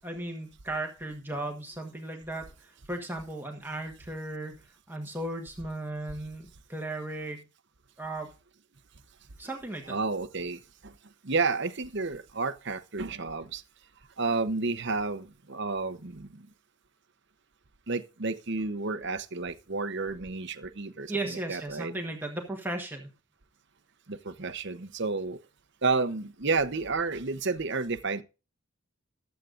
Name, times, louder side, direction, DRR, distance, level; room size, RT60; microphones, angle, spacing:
voice 1, 0.0-7.4 8.0-8.3 9.4-10.0 21.1-23.1, right 2 dB, 10° right, 1.3 m, -36 dB
voice 2, 9.9-10.9 11.2-13.6 14.2-16.4 17.9-21.9 24.1-25.4 25.8-28.2, right 4 dB, 50° right, 0.9 m, -31 dB
15.0 x 10.5 x 2.6 m
head